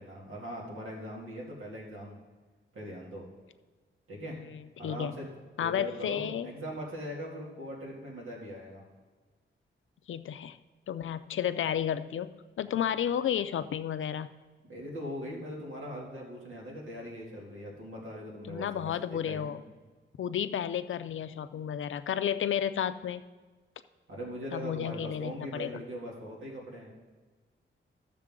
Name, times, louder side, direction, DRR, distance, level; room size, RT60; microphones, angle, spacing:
voice 1, 0.0-2.2 2.7-3.2 4.1-4.4 4.8-5.3 5.6-8.8 14.6-19.6 24.1-26.9, equal, 80° right, -3 dB, 2.4 m, -41 dB
voice 2, 4.3-5.1 5.6-6.5 10.1-10.6 10.9-14.3 18.5-19.6 20.2-23.2 24.5-25.8, left 9 dB, 75° left, 12 dB, 0.5 m, -32 dB
14.0 x 6.7 x 3.7 m, 1.3 s
wide cardioid pair, 130°, 21 cm